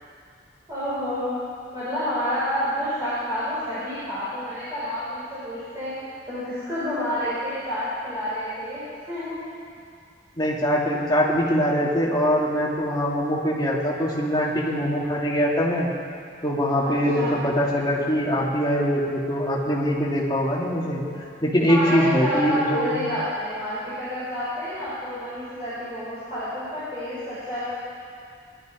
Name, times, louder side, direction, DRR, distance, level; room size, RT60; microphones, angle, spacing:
voice 1, 0.7-1.4 1.7-5.9 6.3-9.5 16.8-17.4 21.7-27.7, equal, 15° right, -14 dB, 5.2 m, -29 dB
voice 2, 10.4-15.9 16.4-23.0, equal, 20° left, -4 dB, 2.4 m, -23 dB
21.5 x 12.5 x 5.1 m, 2.3 s
head